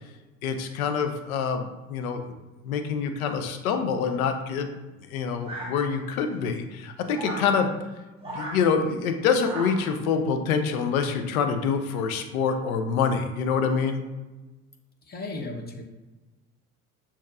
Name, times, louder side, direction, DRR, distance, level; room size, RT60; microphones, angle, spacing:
voice 1, 0.4-2.2 2.6-4.7 5.1-7.7 8.3-14.0, left 6 dB, 75° left, 7 dB, 0.6 m, -26 dB
sound 1, 5.4-6.2 7.1-7.5 8.2-8.6 9.4-9.9, right 1 dB, 15° right, 1.4 m, -36 dB
voice 2, 15.0-15.8, left 2 dB, 25° left, 3 dB, 0.7 m, -35 dB
6.2 x 2.9 x 2.4 m, 1.1 s
hypercardioid pair, 60°, 42 cm